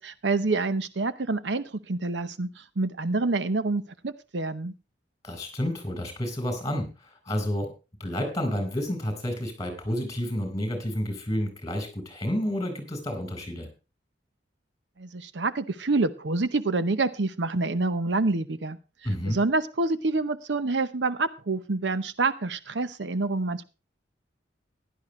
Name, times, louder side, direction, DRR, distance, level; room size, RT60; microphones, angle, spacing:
voice 1, 0.0-4.7 15.0-18.8 19.3-23.6, right 3 dB, 70° right, 13 dB, 0.8 m, -27 dB
voice 2, 5.2-7.7 8.0-13.7 19.0-19.4, equal, 20° left, 7 dB, 4.6 m, -30 dB
16.0 x 11.5 x 3.2 m, 0.30 s
head